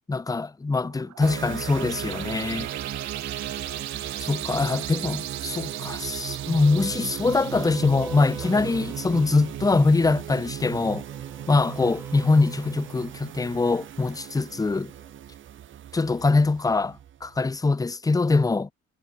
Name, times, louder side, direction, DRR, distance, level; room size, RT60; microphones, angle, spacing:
voice 1, 0.1-2.7 4.2-11.0 11.5-14.9 15.9-18.7, left 3 dB, 10° left, 0.6 m, -23 dB
sound 1, 0.8-10.0, right 13 dB, 65° right, 0.9 m, -39 dB
sound 2, 1.2-17.5, right 10 dB, 40° right, 0.5 m, -36 dB
sound 3, 5.5-9.9 10.8-14.3 14.8-15.2, right 1 dB, 5° right, 1.9 m, -45 dB
cardioid pair, 90°, 30 cm